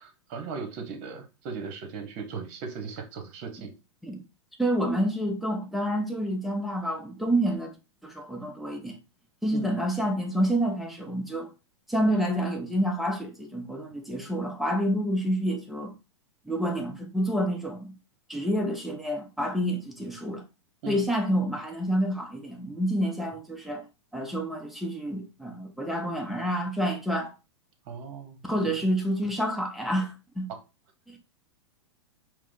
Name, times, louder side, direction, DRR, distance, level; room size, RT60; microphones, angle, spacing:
voice 1, 0.0-3.7 9.5-9.8 20.8-21.0 27.9-28.4 28.6-28.7, right 5 dB, 45° right, 1.1 m, -38 dB
voice 2, 4.6-7.8 8.0-9.0 9.4-11.5 11.9-15.9 16.5-17.9 18.3-20.4 20.9-23.8 24.1-27.3 28.4-30.5 31.1-31.2, equal, ahead, 0.8 m, -28 dB
4.7 x 2.2 x 3.7 m
figure-of-eight pair, 100°, 16 cm